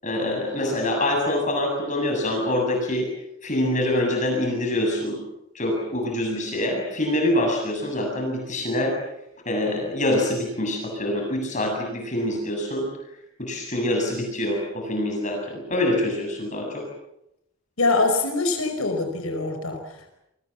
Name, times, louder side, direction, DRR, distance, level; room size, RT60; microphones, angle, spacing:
voice 1, 0.0-3.1 3.4-5.2 5.5-8.9 9.5-12.9 13.4-16.8, left 1 dB, 35° left, 1 dB, 7.5 m, -25 dB
voice 2, 17.8-20.2, left 3 dB, 75° left, 5 dB, 5.2 m, -24 dB
30.0 x 24.0 x 7.3 m, 0.83 s
head